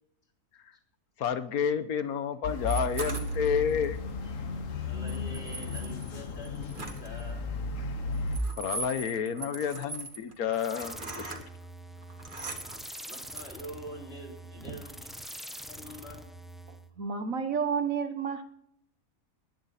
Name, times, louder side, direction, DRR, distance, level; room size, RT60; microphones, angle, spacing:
voice 1, 1.2-4.0 8.6-11.4 12.4-12.5, left 7 dB, 90° left, 11 dB, 1.5 m, -30 dB
sound 1, 2.4-8.4, left 2 dB, 65° left, 1.5 m, -34 dB
sound 2, 2.7-3.8 5.1-7.2 8.1-11.4 12.0-13.6, right 3 dB, 35° right, 1.7 m, -41 dB
voice 2, 4.9-7.4 11.6-11.7 13.1-15.4 15.7-16.2, equal, 45° left, 0 dB, 4.0 m, -45 dB
sound 3, 10.5-16.9, equal, ahead, 0.9 m, -45 dB
voice 3, 17.0-18.4, right 6 dB, 70° right, 8 dB, 1.7 m, -30 dB
20.0 x 10.5 x 4.2 m, 0.71 s
omnidirectional pair, 1.5 m